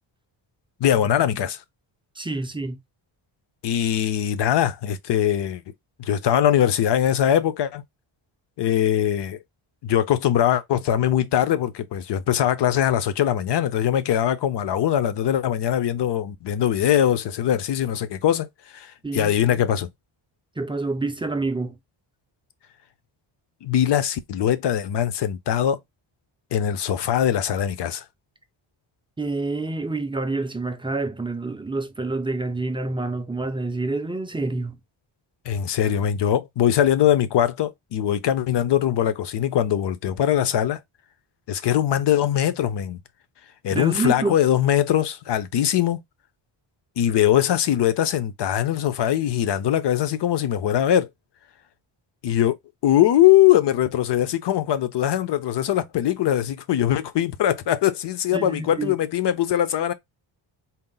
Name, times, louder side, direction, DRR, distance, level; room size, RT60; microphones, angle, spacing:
voice 1, 0.8-1.6 3.6-5.6 6.0-7.8 8.6-9.4 9.8-19.9 23.6-25.8 26.5-28.1 35.5-40.8 41.5-43.0 43.6-46.0 47.0-51.1 52.2-52.6 52.8-59.9, left 11 dB, 55° left, 0.6 m, -21 dB
voice 2, 2.2-2.8 19.0-19.6 20.6-21.8 29.2-34.8 43.7-44.4 58.3-58.9, right 3 dB, 10° right, 0.4 m, -27 dB
4.3 x 2.0 x 3.7 m
wide cardioid pair, 135°, 49 cm